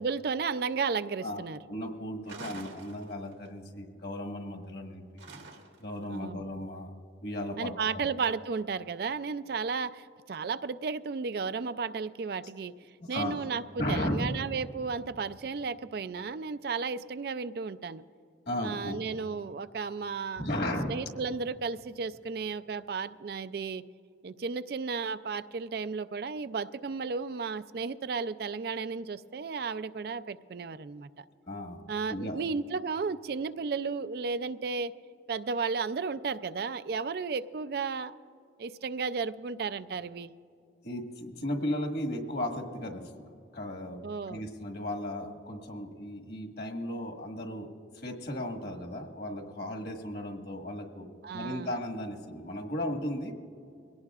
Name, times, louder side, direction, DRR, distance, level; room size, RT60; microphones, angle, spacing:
voice 1, 0.0-1.6 6.1-6.4 7.6-12.7 13.1-18.0 18.6-23.8 24.2-31.2 31.9-34.9 35.3-38.2 38.6-40.3 44.0-44.4 51.2-51.7, right 5 dB, 55° right, 13 dB, 0.4 m, -34 dB
voice 2, 1.2-5.3 5.8-6.9 7.2-8.0 13.1-13.4 13.8-14.3 18.5-19.0 20.4-20.9 31.5-31.8 32.1-32.4 40.8-43.0 43.5-47.7 47.9-51.1 51.3-53.3, left 1 dB, 55° left, 2 dB, 1.6 m, -35 dB
sound 1, 2.3-3.5 5.2-6.0, right 3 dB, 85° right, 1.7 m, -46 dB
22.0 x 17.5 x 2.4 m, 2.4 s
head